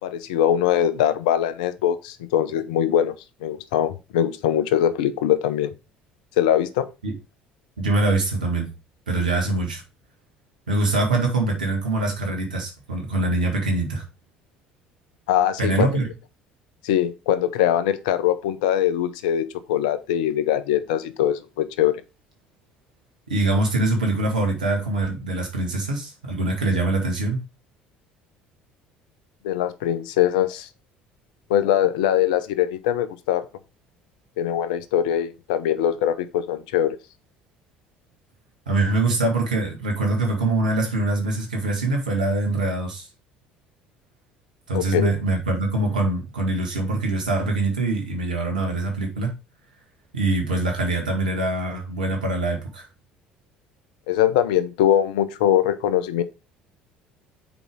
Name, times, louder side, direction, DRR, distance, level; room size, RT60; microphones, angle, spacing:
voice 1, 0.0-3.1 3.4-5.7 6.4-6.9 15.3-15.9 16.8-22.0 29.4-30.7 31.5-33.4 34.4-37.0 44.7-45.1 54.1-56.2, left 10 dB, 75° left, 0.7 m, -22 dB
voice 2, 7.8-8.7 9.1-9.8 10.7-14.0 15.6-16.1 23.3-27.4 38.7-43.1 44.7-49.4 50.1-52.9, right 2 dB, 85° right, 1.9 m, -23 dB
7.0 x 4.7 x 3.6 m
hypercardioid pair, 60°, 4 cm